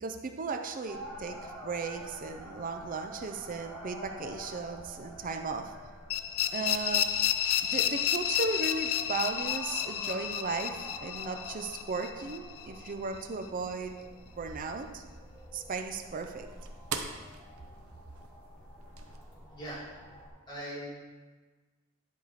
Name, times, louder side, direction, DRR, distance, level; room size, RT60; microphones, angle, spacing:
voice 1, 0.0-5.7 6.5-7.1 7.6-13.9 14.4-15.0 15.5-16.5, right 4 dB, 40° right, 6 dB, 0.5 m, -36 dB
sound 1, 0.9-20.3, equal, 5° left, 1.7 m, -48 dB
sound 2, 6.1-12.9, left 10 dB, 75° left, 0.4 m, -31 dB
sound 3, 13.9-19.2, right 6 dB, 85° right, 0.7 m, -45 dB
voice 2, 20.5-20.8, right 1 dB, 20° left, -8 dB, 2.5 m, -39 dB
10.5 x 4.8 x 4.1 m, 1.3 s
head